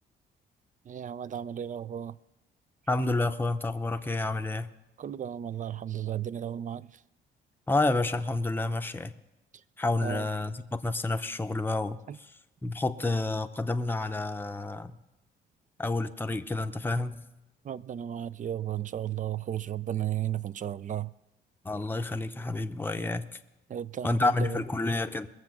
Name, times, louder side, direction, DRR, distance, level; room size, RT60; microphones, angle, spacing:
voice 1, 0.9-2.2 5.0-6.9 10.0-10.3 12.1-12.2 17.6-21.1 23.0-23.1 23.7-24.6, right 10 dB, 40° right, 0.4 m, -34 dB
voice 2, 2.9-4.7 7.7-9.1 9.8-12.0 12.6-15.0 15.8-17.2 21.6-23.3 24.0-25.3, left 2 dB, 10° left, 0.7 m, -29 dB
21.5 x 7.3 x 6.0 m
cardioid pair, 90°, 20 cm